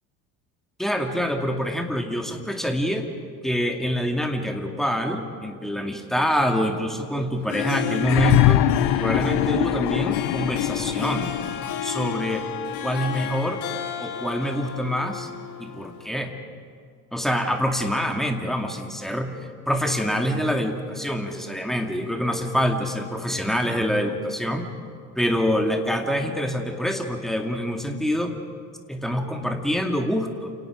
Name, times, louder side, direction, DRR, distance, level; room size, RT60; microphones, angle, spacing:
voice 1, 0.8-3.1 3.4-8.6 9.0-11.3 11.8-12.5 12.8-13.6 14.0-15.3 15.6-16.3 17.1-19.4 19.7-24.7 25.2-28.4 28.9-30.5, equal, ahead, 4 dB, 2.4 m, -25 dB
Harp, 7.3-16.1, left 9 dB, 65° left, 2.1 m, -32 dB
sound 1, 8.0-11.8 13.0-13.1, left 14 dB, 50° left, 0.9 m, -23 dB
29.0 x 18.5 x 5.1 m, 2.1 s
figure-of-eight pair, 65°, 47 cm